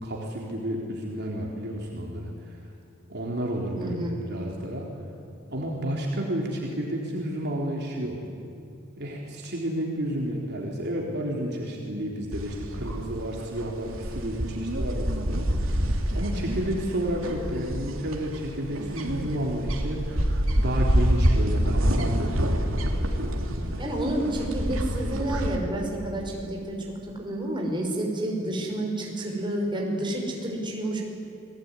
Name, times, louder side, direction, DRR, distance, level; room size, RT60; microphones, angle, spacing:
voice 1, 0.0-2.6 3.1-3.9 4.3-4.9 5.5-8.2 9.0-15.4 16.1-20.3 20.6-22.3, right 1 dB, 55° right, -1 dB, 3.8 m, -31 dB
voice 2, 3.7-4.2 23.8-26.8 27.2-31.0, right 1 dB, 25° right, 0 dB, 5.7 m, -29 dB
sound 1, 12.3-25.6, equal, 85° right, 3.0 m, -27 dB
29.5 x 20.0 x 9.9 m, 2.5 s
head